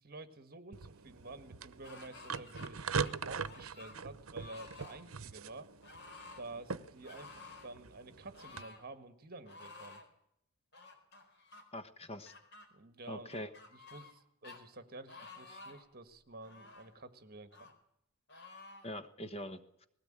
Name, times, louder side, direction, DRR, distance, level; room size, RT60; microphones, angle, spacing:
voice 1, 0.0-2.9 3.2-5.7 6.4-10.0 12.7-17.7, right 2 dB, 45° right, 10 dB, 1.7 m, -50 dB
sound 1, 0.7-8.6, right 5 dB, 70° right, 0.9 m, -42 dB
sound 2, 1.8-2.7 3.0-4.0 4.4-5.0 5.8-6.4 7.0-7.7 8.3-8.8 9.5-10.1 10.7-11.6 12.3-12.7 13.3-14.2 14.4-14.6 15.1-15.9 16.4-16.9 17.5-17.7 18.3-18.9, left 3 dB, 50° left, 4.2 m, -53 dB
voice 2, 11.7-12.3 13.1-13.5 18.8-19.9, left 1 dB, 30° left, 10 dB, 1.2 m, -43 dB
20.0 x 17.0 x 8.9 m, 0.74 s
head